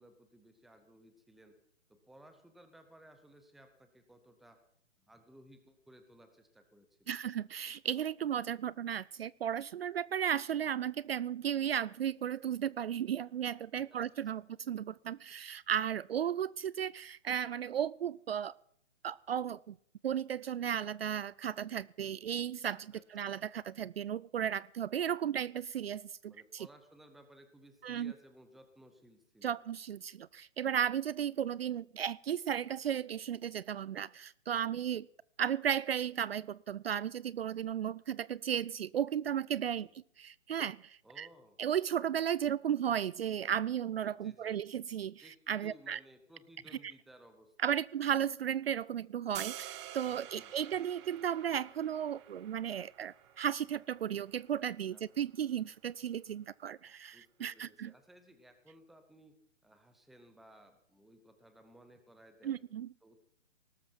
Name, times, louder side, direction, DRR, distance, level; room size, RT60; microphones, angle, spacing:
voice 1, 0.0-1.5 1.9-4.6 5.0-7.2 13.7-14.1 14.4-14.5 22.9-23.0 26.2-29.6 39.7-39.9 41.0-41.6 44.2-44.6 45.2-47.5 50.3-50.7 54.9-55.0 57.1-59.3 59.6-62.6 63.0-63.3, right 1 dB, ahead, 8 dB, 0.7 m, -59 dB
voice 2, 7.1-18.6 19.0-19.8 20.0-26.7 27.8-28.1 29.4-35.1 35.4-39.9 40.2-41.3 41.6-46.0 47.6-57.9 62.4-62.9, right 9 dB, 55° right, 22 dB, 0.5 m, -35 dB
sound 1, 49.3-55.4, right 12 dB, 20° right, 1.2 m, -49 dB
18.5 x 13.0 x 4.5 m, 0.67 s
hypercardioid pair, 150°, 37 cm